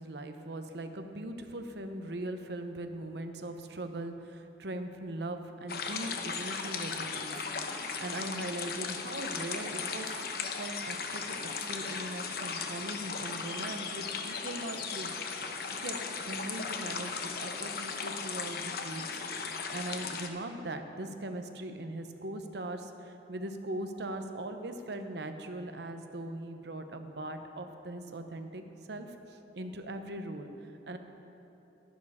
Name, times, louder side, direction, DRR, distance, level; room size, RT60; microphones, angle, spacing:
voice 1, 0.0-10.2 10.6-11.4 11.7-15.1 15.4-16.0 16.2-19.4 19.7-28.6 28.9-31.0, right 1 dB, 70° right, 7 dB, 0.8 m, -40 dB
sound 1, 5.7-20.3, left 5 dB, 60° left, 0.8 m, -37 dB
11.0 x 11.0 x 4.9 m, 3.0 s
head